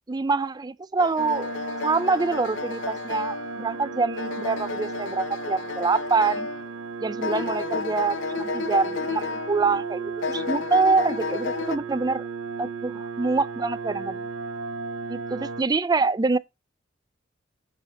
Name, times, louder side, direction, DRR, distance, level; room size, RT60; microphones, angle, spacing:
voice 1, 0.1-1.5 1.8-6.5 7.0-12.2 12.6-14.2 15.3-16.4, right 4 dB, 20° right, 0.4 m, -25 dB
sound 1, 1.0-6.8 7.2-9.9 10.2-11.8, left 5 dB, 75° left, 0.5 m, -32 dB
sound 2, 1.2-15.6, right 5 dB, 75° right, 0.9 m, -35 dB
9.9 x 4.2 x 4.9 m
head